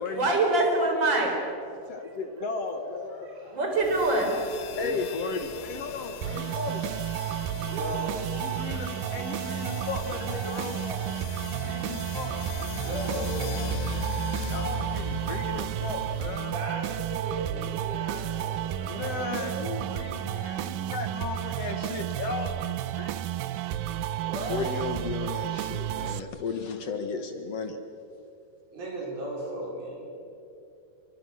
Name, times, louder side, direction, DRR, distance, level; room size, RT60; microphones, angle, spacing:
voice 1, 0.1-2.2 3.3-4.4 4.7-4.8 5.9-6.0 6.3-6.5 18.8-18.9, right 2 dB, 30° right, 1 dB, 5.0 m, -26 dB
voice 2, 1.7-3.6 4.8-6.8 8.4-12.4 14.5-16.5 18.9-23.4 24.5-27.8, left 4 dB, 55° left, 6 dB, 2.1 m, -35 dB
sound 1, 3.8-16.6, left 3 dB, 80° left, 2.8 m, -38 dB
sound 2, 6.2-26.2, right 12 dB, 85° right, 2.5 m, -32 dB
voice 3, 7.6-8.3 12.8-13.6 16.4-19.5 19.9-20.1 24.2-25.0 25.6-25.7 28.7-30.1, right 1 dB, 60° right, -3 dB, 6.7 m, -36 dB
26.5 x 24.5 x 6.3 m, 2.5 s
omnidirectional pair, 3.9 m